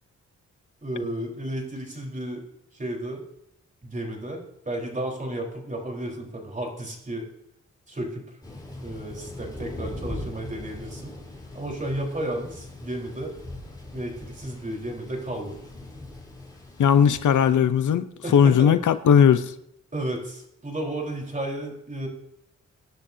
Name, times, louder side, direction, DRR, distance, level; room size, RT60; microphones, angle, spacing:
voice 1, 0.8-2.4 2.7-3.2 3.8-7.3 7.9-8.3 8.8-11.2 11.5-13.3 13.9-15.6 18.2-18.8 19.9-22.1, right 1 dB, 25° right, 0 dB, 4.2 m, -33 dB
Thunder, 8.4-17.5, left 2 dB, 15° left, 4.3 m, -41 dB
voice 2, 16.8-18.1 18.3-19.4, left 8 dB, 85° left, 12 dB, 0.8 m, -18 dB
24.0 x 10.5 x 2.8 m, 0.77 s
wide cardioid pair, 100°, 29 cm